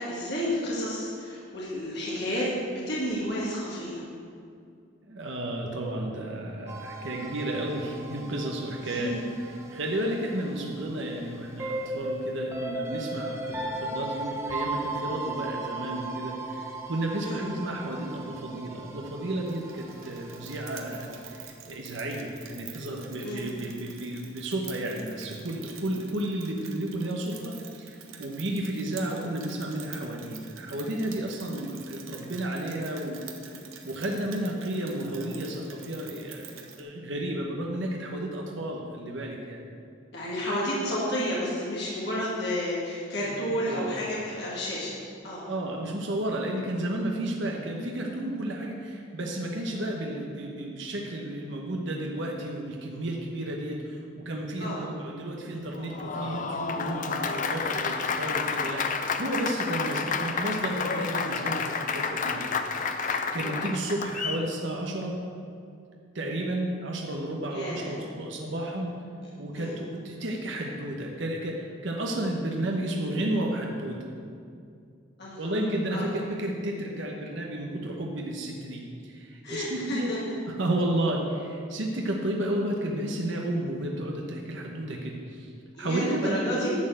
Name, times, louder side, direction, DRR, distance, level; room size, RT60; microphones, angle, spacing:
voice 1, 0.0-4.0 8.8-9.1 17.2-17.4 23.2-23.5 40.1-45.0 45.2-45.4 54.6-54.8 63.4-63.6 67.5-68.0 69.5-69.8 75.2-75.6 75.9-76.1 79.4-80.2 85.8-86.7, equal, 55° left, -6 dB, 1.9 m, -31 dB
voice 2, 5.1-9.1 9.7-33.2 33.5-33.6 33.8-36.5 36.8-39.6 43.2-43.3 43.7-43.9 45.5-63.1 63.3-65.2 66.1-69.0 69.4-74.0 75.4-80.1 80.6-85.5 85.8-86.4, right 1 dB, 65° right, 0 dB, 1.0 m, -32 dB
sound 1, 6.7-21.4, right 2 dB, 15° right, 0.9 m, -37 dB
Rain, 19.5-36.8, right 7 dB, 90° right, 1.1 m, -47 dB
Applause, 55.7-64.5, left 5 dB, 40° left, 0.5 m, -30 dB
11.0 x 4.4 x 7.7 m, 2.4 s
head